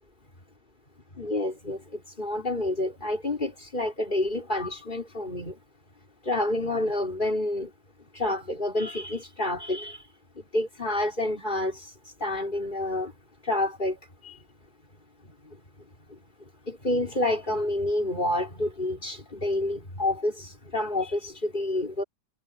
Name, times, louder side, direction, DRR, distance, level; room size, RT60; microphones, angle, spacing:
voice 1, 1.2-5.5 6.3-7.7 8.1-10.0 10.4-11.8 12.2-13.1 13.5-14.0 14.2-14.4 16.7-22.0, left 1 dB, 30° left, 4.1 m, -28 dB
omnidirectional pair, 1.7 m